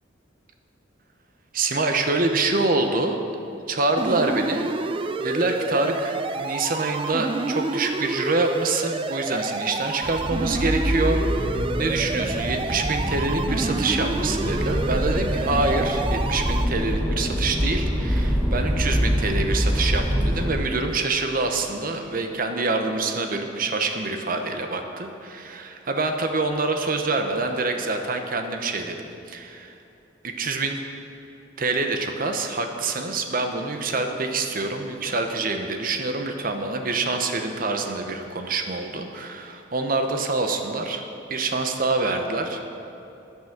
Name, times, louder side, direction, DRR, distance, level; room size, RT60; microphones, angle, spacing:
voice 1, 1.5-3.2 3.7-4.7 5.2-29.0 29.3-29.8 30.2-30.8 31.6-41.0 41.3-42.6, right 3 dB, 45° right, 5 dB, 0.9 m, -26 dB
sound 1, 4.0-16.6, right 3 dB, 25° right, 0.4 m, -29 dB
Accelerating revving vroom, 10.0-20.5, equal, 10° right, 1.4 m, -25 dB
10.0 x 9.5 x 6.6 m, 2.9 s
head